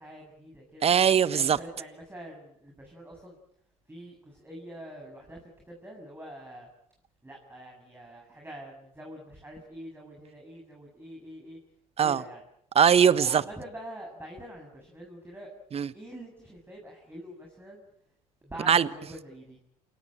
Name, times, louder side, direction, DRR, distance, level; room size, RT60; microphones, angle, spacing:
voice 1, 0.0-0.9 1.3-3.4 3.9-6.7 7.2-11.6 12.0-12.4 13.1-15.5 15.9-17.8 18.4-19.6, right 1 dB, 10° right, 7.3 m, -45 dB
voice 2, 0.8-1.6 12.0-12.2 12.7-13.4 15.7-15.9 18.7-18.9, right 8 dB, 35° right, 1.3 m, -21 dB
28.5 x 17.0 x 8.9 m
hypercardioid pair, 65°, 17 cm